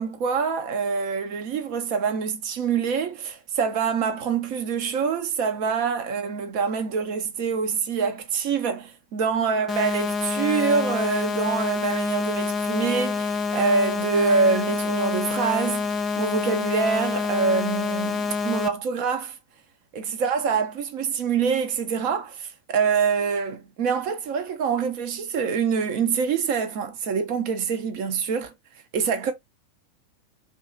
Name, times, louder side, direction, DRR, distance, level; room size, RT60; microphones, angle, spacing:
voice 1, 0.0-19.4 19.9-28.5 28.9-29.3, right 5 dB, 45° right, 0.5 m, -25 dB
sound 1, 9.7-18.7, left 4 dB, 20° left, 0.4 m, -27 dB
2.7 x 2.4 x 2.5 m
figure-of-eight pair, 90°, 0 cm